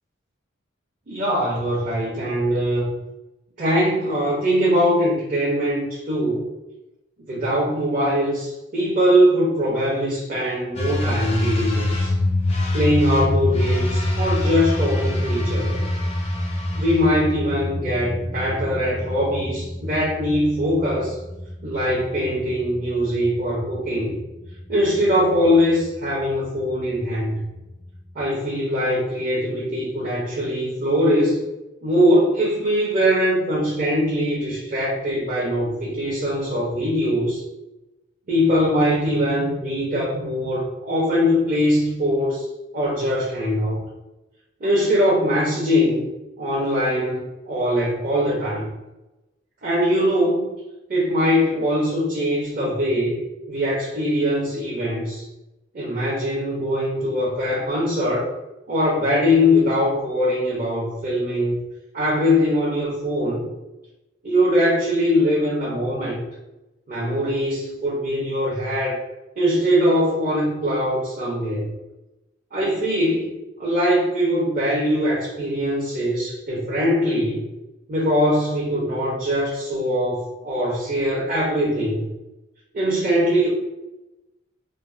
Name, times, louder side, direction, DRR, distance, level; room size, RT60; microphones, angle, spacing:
voice 1, 1.1-2.9 3.6-6.5 7.3-12.1 12.7-15.8 16.7-21.2 21.6-24.2 24.7-27.5 28.1-31.4 31.8-37.4 38.3-42.4 42.7-43.8 44.6-46.1 46.4-48.7 49.6-50.5 50.9-53.2 53.5-55.2 55.7-58.3 58.7-61.6 61.9-63.5 64.2-66.2 66.9-69.0 69.4-71.7 72.5-73.3 73.6-77.4 77.9-82.0 82.7-83.5, equal, 40° right, -6 dB, 0.6 m, -21 dB
sound 1, 10.8-28.2, left 1 dB, 30° left, 0.4 m, -26 dB
3.2 x 2.0 x 2.4 m, 0.99 s
head